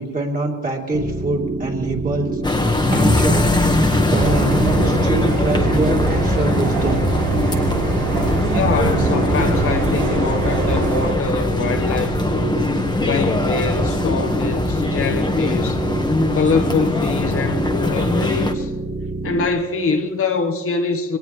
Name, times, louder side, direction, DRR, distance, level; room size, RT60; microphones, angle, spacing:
voice 1, 0.0-7.0, right 2 dB, 30° right, 3.2 m, -24 dB
sound 1, 0.9-19.5, right 2 dB, 45° right, 2.9 m, -28 dB
sound 2, 2.4-18.5, left 2 dB, 15° left, 1.3 m, -21 dB
sound 3, 4.1-11.1, right 3 dB, 85° right, 2.5 m, -23 dB
voice 2, 8.4-12.6 13.0-15.9 16.3-18.7 19.2-21.2, left 5 dB, 45° left, 1.3 m, -24 dB
24.0 x 19.0 x 3.2 m
cardioid pair, 90°, 30 cm